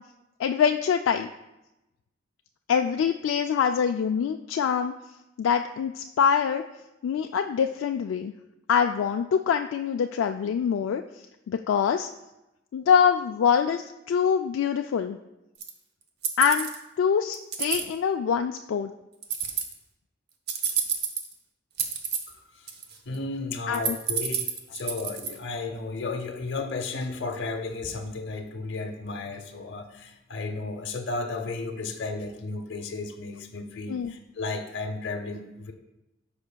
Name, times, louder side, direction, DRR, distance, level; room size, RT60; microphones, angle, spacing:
voice 1, 0.4-1.3 2.7-4.9 5.4-6.6 7.0-8.3 8.7-11.0 11.5-12.1 12.7-15.2 16.4-16.7 17.0-18.9 23.7-23.9 33.9-34.1, left 7 dB, 80° left, 5 dB, 0.3 m, -24 dB
sound 1, 15.6-15.7 16.2-16.8 17.3-17.8 19.2-19.7 20.5-21.3 21.8-22.3 22.7-23.1 23.5-25.3, right 7 dB, 55° right, 0.8 m, -28 dB
voice 2, 22.3-22.7 23.1-35.7, left 3 dB, 65° left, 5 dB, 0.8 m, -34 dB
14.0 x 5.1 x 2.2 m, 0.95 s
head